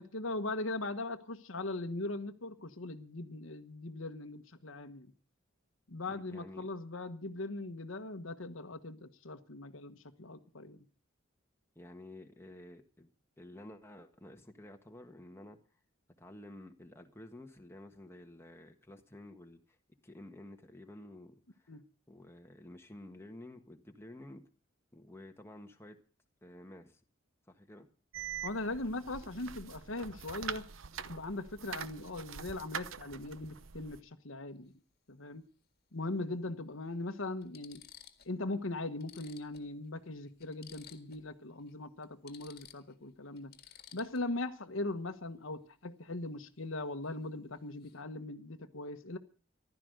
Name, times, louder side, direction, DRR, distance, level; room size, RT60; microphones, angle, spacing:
voice 1, 0.0-5.1 5.9-10.8 21.7-21.8 28.4-30.7 31.0-34.7 35.1-35.4 35.9-37.8 38.2-43.5 43.9-49.2, left 2 dB, 75° left, 1.3 m, -40 dB
voice 2, 6.1-6.7 11.7-13.1 13.4-15.6 16.2-19.8 20.0-21.3 21.6-21.7 22.1-24.4 24.9-26.0 26.4-27.0 27.5-27.9, left 1 dB, 10° left, 1.5 m, -51 dB
sound 1, 28.1-34.0, right 7 dB, 75° right, 0.8 m, -44 dB
sound 2, 34.5-34.7 36.1-36.2 36.9-37.0 37.4-38.4 38.7-38.8 39.0-41.3 41.6-41.7 42.0-44.4 47.0-47.3 47.5-48.0, left 9 dB, 50° left, 1.8 m, -56 dB
15.0 x 12.0 x 6.5 m
head